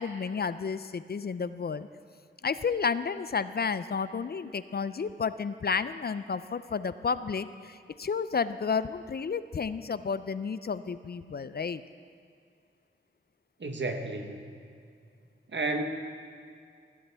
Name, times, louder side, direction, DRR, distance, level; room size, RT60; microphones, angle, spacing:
voice 1, 0.0-1.9 2.4-11.8, left 5 dB, 50° left, 14 dB, 0.4 m, -31 dB
voice 2, 13.6-14.4 15.5-15.8, right 2 dB, 60° right, 5 dB, 1.2 m, -31 dB
17.0 x 12.5 x 3.4 m, 2.3 s
wide cardioid pair, 70°, 21 cm